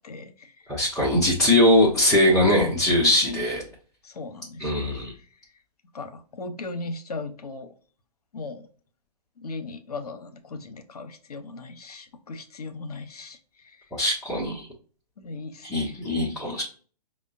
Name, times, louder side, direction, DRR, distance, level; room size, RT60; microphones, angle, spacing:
voice 1, 0.0-0.5 2.3-3.4 4.0-4.9 5.9-7.7 8.3-8.7 9.4-13.4 13.6-13.8 15.2-15.7, left 2 dB, 65° left, 0.7 m, -37 dB
voice 2, 0.7-3.6 4.6-5.1 13.9-14.7 15.6-16.6, left 1 dB, ahead, 0.6 m, -21 dB
5.1 x 2.0 x 2.5 m
figure-of-eight pair, 125°, 21 cm